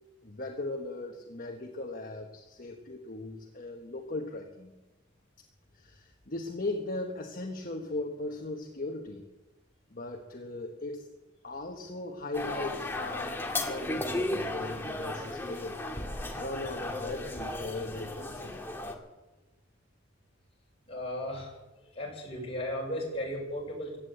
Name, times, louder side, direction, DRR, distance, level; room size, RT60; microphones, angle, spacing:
voice 1, 0.2-4.7 5.7-9.3 9.9-11.1 11.4-15.8 16.3-18.6, left 2 dB, 45° left, 3 dB, 1.2 m, -38 dB
sound 1, 12.3-18.9, left 2 dB, 10° left, 1.7 m, -35 dB
voice 2, 20.9-21.5 21.9-24.0, left 1 dB, 30° left, -1 dB, 5.2 m, -35 dB
16.0 x 10.5 x 8.0 m, 1.1 s
head